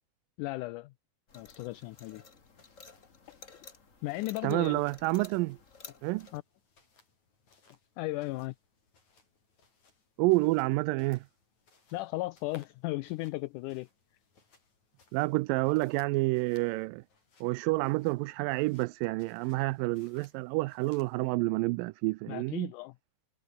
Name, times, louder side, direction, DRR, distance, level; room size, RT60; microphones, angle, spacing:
voice 1, 0.4-0.9 1.3-2.2 3.3-3.4 4.0-4.8 6.3-6.4 7.5-7.6 8.0-8.6 11.9-13.9 22.3-23.0, left 19 dB, 80° left, 1.9 m, -36 dB
sound 1, 1.3-6.4, left 4 dB, 25° left, 1.9 m, -53 dB
sound 2, 1.5-21.3, left 4 dB, 55° left, 7.4 m, -66 dB
voice 2, 4.4-5.6 6.0-6.3 10.2-11.2 15.1-17.0 17.4-22.7, right 23 dB, 80° right, 2.2 m, -29 dB
omnidirectional pair, 4.1 m